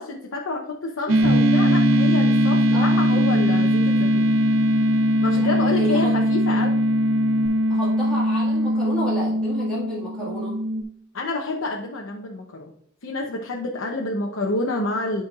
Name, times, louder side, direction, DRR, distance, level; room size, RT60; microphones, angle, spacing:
voice 1, 0.0-4.3 5.2-6.8 11.1-12.7 13.0-15.2, left 2 dB, 90° left, 0 dB, 0.8 m, -28 dB
sound 1, 1.1-10.8, equal, 75° right, 0.6 m, -21 dB
Bass guitar, 1.2-7.5, right 2 dB, 50° left, 1.9 m, -27 dB
voice 2, 2.7-3.2 5.4-6.1 7.7-10.5, right 1 dB, 5° left, -9 dB, 1.7 m, -31 dB
11.5 x 4.5 x 2.4 m, 0.67 s
head